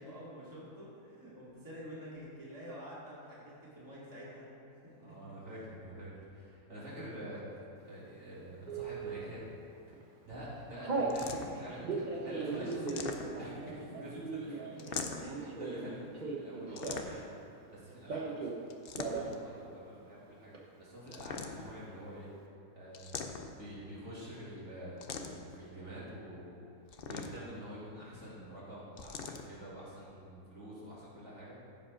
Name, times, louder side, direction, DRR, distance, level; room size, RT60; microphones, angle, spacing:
voice 1, 0.0-5.2 5.5-5.7 11.3-13.1 14.7-15.6, equal, 15° right, -8 dB, 2.3 m, -48 dB
voice 2, 5.0-7.5 7.8-9.4 10.2-12.8 13.4-14.9 15.3-17.3 17.7-18.5 19.1-22.3 22.7-23.2 23.6-26.7 27.0-31.6, equal, 50° right, -9 dB, 2.7 m, -47 dB
Telephone, 8.7-9.2 9.8-10.0 10.3-11.2 11.7-17.2 17.5-18.6 18.9-19.3 19.6-19.7 20.0-20.6, right 4 dB, 35° right, 1.0 m, -38 dB
sound 1, 11.1-11.7 12.7-13.6 14.8-15.4 16.8-17.4 18.7-19.5 21.1-21.8 22.9-23.7 25.0-25.6 26.9-27.6 29.0-29.5, left 5 dB, 55° left, 0.7 m, -42 dB
15.0 x 5.1 x 5.1 m, 2.5 s
omnidirectional pair, 1.6 m